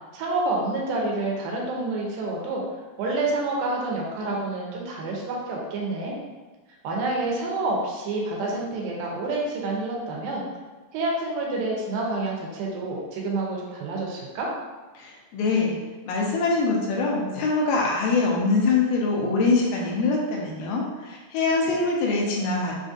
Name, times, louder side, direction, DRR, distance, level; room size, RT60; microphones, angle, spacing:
voice 1, 0.1-2.6 3.0-6.1 6.8-10.5 10.9-14.5, right 2 dB, 85° right, -2 dB, 2.5 m, -28 dB
voice 2, 15.0-15.8 16.1-22.7, left 3 dB, 80° left, -2 dB, 2.3 m, -23 dB
5.8 x 2.6 x 2.4 m, 1.3 s
omnidirectional pair, 4.1 m